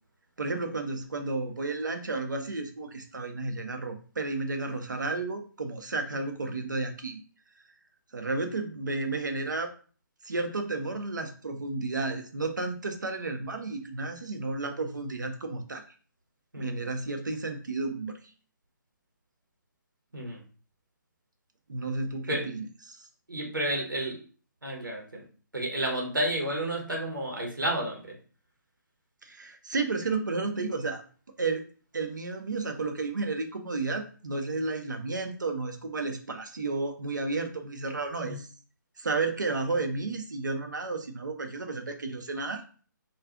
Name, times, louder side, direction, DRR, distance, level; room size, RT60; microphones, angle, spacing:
voice 1, 0.4-7.2 8.1-9.7 10.2-15.8 16.6-18.2 21.7-23.0 29.2-31.0 31.4-31.6 31.9-38.5 39.0-42.6, right 3 dB, 70° right, 6 dB, 0.6 m, -32 dB
voice 2, 23.3-24.1 24.6-25.2 25.5-28.0 38.2-38.4, right 1 dB, 85° right, -1 dB, 1.0 m, -31 dB
2.5 x 2.4 x 3.4 m, 0.39 s
figure-of-eight pair, 135°, 11 cm